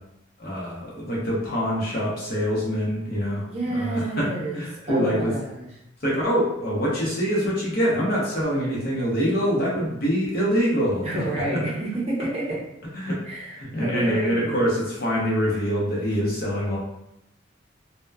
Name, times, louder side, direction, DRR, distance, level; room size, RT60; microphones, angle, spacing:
voice 1, 0.4-5.3 6.0-11.1 11.3-11.4 12.9-13.2 13.6-16.8, equal, 50° left, -5 dB, 0.8 m, -25 dB
voice 2, 3.5-5.7 11.0-12.6 13.2-14.7, right 1 dB, 35° right, -4 dB, 0.6 m, -29 dB
2.9 x 2.1 x 2.3 m, 0.82 s
head